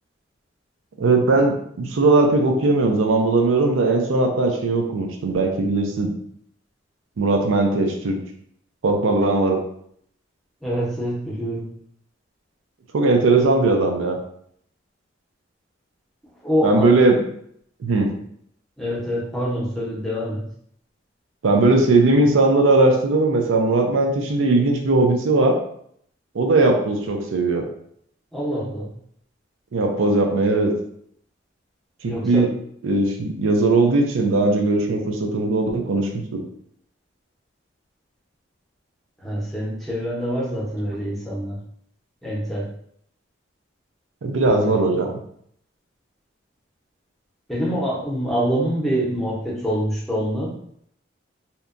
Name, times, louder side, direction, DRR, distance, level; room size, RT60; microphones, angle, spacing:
voice 1, 1.0-6.1 7.2-8.2 8.8-9.6 12.9-14.2 16.6-17.2 17.8-18.1 21.4-25.6 26.3-27.6 29.7-30.7 32.0-32.5 32.8-36.4 44.2-45.1, right 2 dB, 90° right, 3 dB, 0.4 m, -19 dB
voice 2, 10.6-11.7 16.4-16.9 18.8-20.4 28.3-28.9 32.1-32.5 39.2-41.6 42.2-42.7 44.4-44.8 47.5-50.5, equal, ahead, -6 dB, 0.6 m, -25 dB
2.8 x 2.1 x 2.4 m, 0.68 s
head